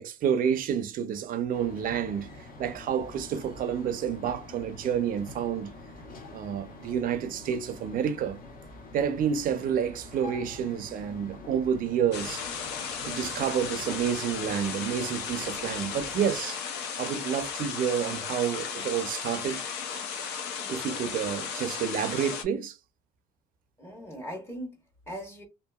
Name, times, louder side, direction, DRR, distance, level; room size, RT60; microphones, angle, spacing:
voice 1, 0.0-5.7 6.3-8.4 8.9-12.4 13.0-16.6 17.0-19.6 20.0-20.1 20.6-22.8, right 8 dB, 55° right, 0.5 m, -29 dB
sound 1, 1.5-16.4, left 2 dB, 55° left, 1.1 m, -46 dB
sound 2, 12.1-22.4, left 6 dB, 85° left, 0.6 m, -35 dB
voice 2, 23.8-25.4, equal, 15° left, 1.0 m, -40 dB
2.7 x 2.5 x 2.3 m
cardioid pair, 110°, 17 cm